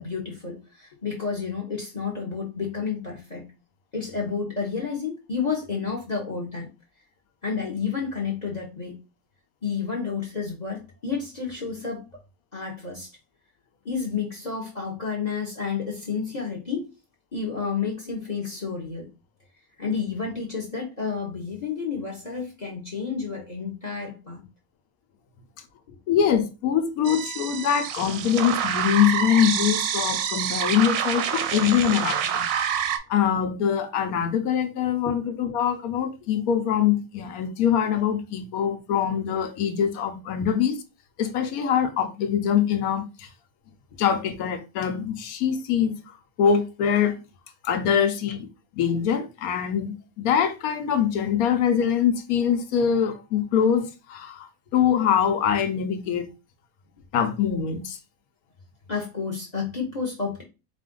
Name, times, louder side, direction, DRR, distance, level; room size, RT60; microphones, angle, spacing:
voice 1, 0.0-3.5 3.9-6.7 7.4-9.0 9.6-12.0 12.5-13.1 13.8-16.9 17.3-19.1 19.8-24.4 25.9-26.0 35.0-35.2 58.9-60.4, left 5 dB, 35° left, 0.9 m, -30 dB
voice 2, 26.1-32.5 33.1-40.8 41.2-43.3 44.0-46.0 46.4-47.2 47.6-48.5 48.8-56.3 57.1-58.0, left 8 dB, 70° left, 1.1 m, -23 dB
sound 1, 27.0-33.0, right 8 dB, 70° right, 0.9 m, -27 dB
4.3 x 2.5 x 3.7 m
omnidirectional pair, 1.6 m